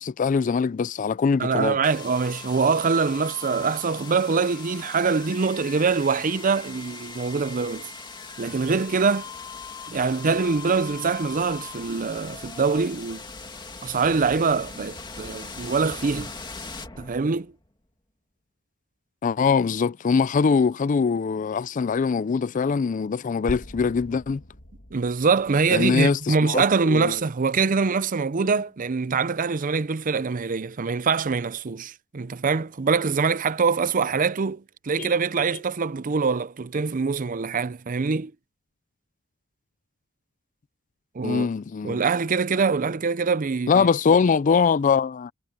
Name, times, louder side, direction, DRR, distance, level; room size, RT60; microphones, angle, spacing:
voice 1, 0.0-1.8 19.2-24.4 25.7-27.1 35.0-35.1 41.2-42.0 43.7-45.3, left 5 dB, 40° left, 0.4 m, -22 dB
voice 2, 1.4-7.9 8.4-9.3 9.9-13.2 13.8-16.3 17.0-17.5 24.9-38.3 41.1-41.5 41.8-43.9, right 5 dB, 40° right, 0.5 m, -24 dB
sound 1, 1.8-17.7, left 4 dB, 20° left, 2.4 m, -40 dB
sound 2, 23.5-27.4, left 1 dB, 55° left, 2.1 m, -42 dB
head